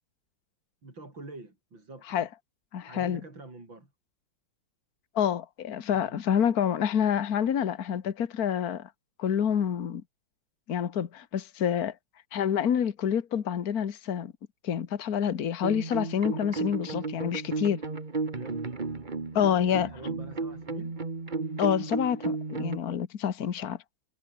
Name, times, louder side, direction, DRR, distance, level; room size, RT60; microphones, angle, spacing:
voice 1, 0.8-2.3 2.9-3.9 5.9-6.2 18.3-18.6 19.7-21.0, right 2 dB, 75° right, 7.7 m, -46 dB
voice 2, 2.7-3.2 5.2-8.9 9.2-10.0 10.7-11.9 12.3-14.3 14.6-17.8 19.3-19.9 21.6-23.8, left 8 dB, 50° left, 1.8 m, -27 dB
sound 1, 15.6-22.8, right 3 dB, 25° right, 1.7 m, -33 dB
omnidirectional pair, 2.1 m